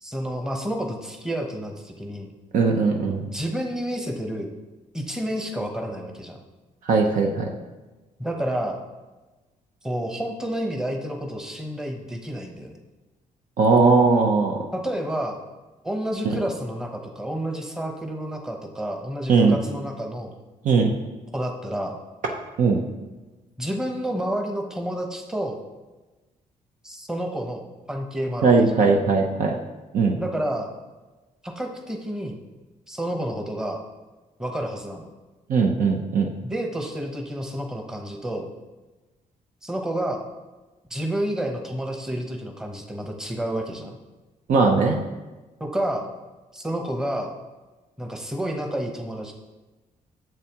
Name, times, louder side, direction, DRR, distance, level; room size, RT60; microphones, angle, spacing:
voice 1, 0.0-2.3 3.2-4.5 4.9-6.4 8.2-8.8 9.8-12.8 14.7-15.4 15.8-20.3 21.3-22.0 23.6-25.6 26.8-28.8 30.2-30.7 31.4-32.4 32.9-33.8 34.4-35.1 36.4-38.5 39.6-40.3 40.9-44.0 45.6-46.1 46.5-47.3 48.0-49.3, right 1 dB, 5° right, 2 dB, 0.9 m, -30 dB
voice 2, 2.5-3.2 6.8-7.5 13.6-14.6 19.3-19.6 20.6-20.9 22.6-22.8 28.4-29.5 29.9-30.2 35.5-36.3 44.5-45.0, right 4 dB, 70° right, 1 dB, 0.8 m, -19 dB
10.5 x 7.4 x 3.0 m, 1.2 s
cardioid pair, 135°, 14 cm